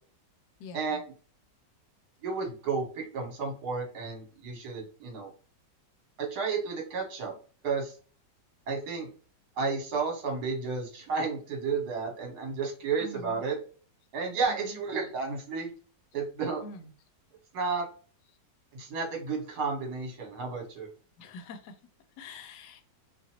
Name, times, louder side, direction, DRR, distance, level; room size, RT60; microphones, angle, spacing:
voice 1, 0.6-1.0 13.0-13.4 14.7-14.8 16.6-16.8 21.2-21.7 22.2-22.8, left 3 dB, 75° left, 8 dB, 1.1 m, -45 dB
voice 2, 2.2-5.3 6.2-7.3 7.6-7.9 8.7-9.1 9.6-13.6 14.1-15.7 16.1-16.6 17.5-17.8 18.7-20.9, right 5 dB, 65° right, 2 dB, 1.5 m, -32 dB
2.9 x 2.5 x 2.7 m, 0.40 s
omnidirectional pair, 1.9 m